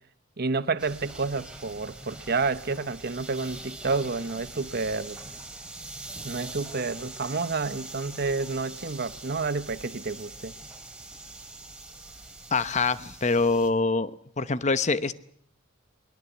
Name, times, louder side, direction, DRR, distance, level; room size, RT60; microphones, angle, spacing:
voice 1, 0.4-5.2 6.2-10.5, right 4 dB, 50° right, 1.0 m, -29 dB
sound 1, 0.8-13.7, right 2 dB, 5° right, 3.2 m, -43 dB
voice 2, 12.5-14.1 14.4-15.1, left 3 dB, 35° left, 0.9 m, -24 dB
21.5 x 21.0 x 8.1 m
head